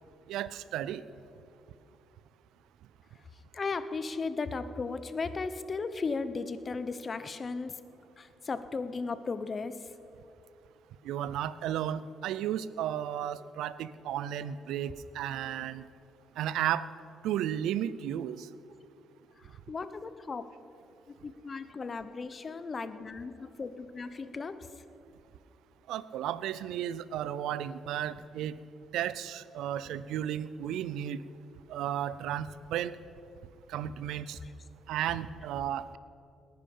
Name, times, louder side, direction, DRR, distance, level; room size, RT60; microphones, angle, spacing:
voice 1, 0.3-1.0 11.0-15.8 16.4-16.9 17.2-18.5 25.9-28.6 28.9-31.2 31.7-33.0 33.7-34.4 34.9-36.0, right 10 dB, 90° right, 17 dB, 0.5 m, -33 dB
voice 2, 3.5-7.7 8.2-9.8 19.7-20.5 21.2-24.6, left 4 dB, 35° left, 12 dB, 0.9 m, -36 dB
19.0 x 10.5 x 5.5 m, 2.6 s
cardioid pair, 90°, 0 cm